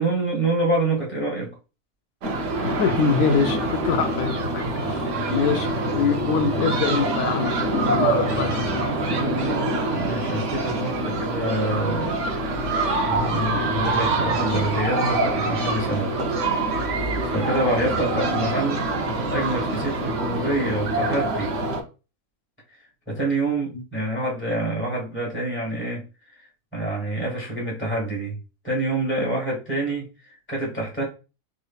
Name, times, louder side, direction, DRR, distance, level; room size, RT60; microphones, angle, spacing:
voice 1, 0.0-1.5 9.9-12.2 13.1-16.2 17.3-21.5 23.1-26.0 26.4-26.5 26.7-28.4 28.6-31.0, right 1 dB, 10° left, 1.5 m, -27 dB
sound 1, 2.2-21.8, right 2 dB, 65° right, 1.0 m, -25 dB
voice 2, 2.6-5.7 5.9-8.9, left 5 dB, 80° left, 1.0 m, -24 dB
3.6 x 3.1 x 2.4 m
omnidirectional pair, 1.5 m